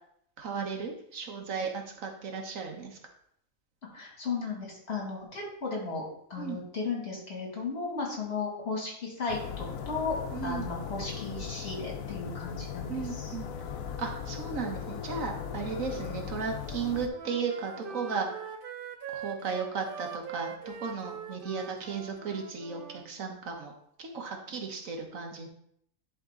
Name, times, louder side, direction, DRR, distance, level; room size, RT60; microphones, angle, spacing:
voice 1, 0.4-3.0 6.4-6.6 10.3-10.7 12.9-13.5 14.0-18.4 19.1-23.7 24.0-25.5, right 5 dB, 80° right, 2 dB, 1.5 m, -35 dB
voice 2, 3.9-6.0 6.3-10.2 10.4-13.3, left 4 dB, 50° left, -2 dB, 2.5 m, -35 dB
sound 1, 9.3-17.1, left 7 dB, 90° left, 1.1 m, -38 dB
Wind instrument woodwind instrument, 16.7-23.1, right 7 dB, 55° right, 0.7 m, -42 dB
11.0 x 3.7 x 3.7 m, 0.69 s
omnidirectional pair, 1.4 m